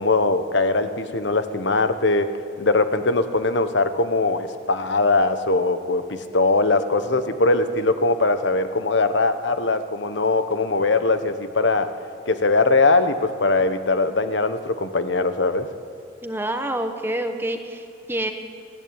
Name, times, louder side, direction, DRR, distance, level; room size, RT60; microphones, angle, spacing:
voice 1, 0.0-2.3 2.6-11.9 12.3-15.7, left 3 dB, 70° left, 10 dB, 1.2 m, -21 dB
voice 2, 16.2-18.3, right 1 dB, 10° right, 6 dB, 1.3 m, -27 dB
27.5 x 14.5 x 8.9 m, 2.3 s
head